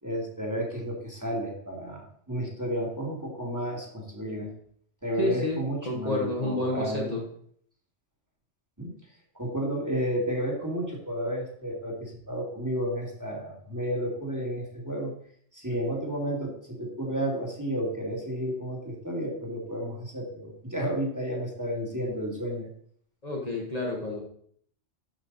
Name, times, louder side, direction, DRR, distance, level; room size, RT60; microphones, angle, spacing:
voice 1, 0.0-4.5 5.0-7.2 8.8-9.0 9.3-15.1 15.5-22.7, equal, 15° right, -2 dB, 2.1 m, -32 dB
voice 2, 5.2-7.2 23.2-24.2, left 2 dB, 35° left, -2 dB, 1.5 m, -30 dB
12.0 x 5.6 x 4.1 m, 0.64 s
omnidirectional pair, 1.2 m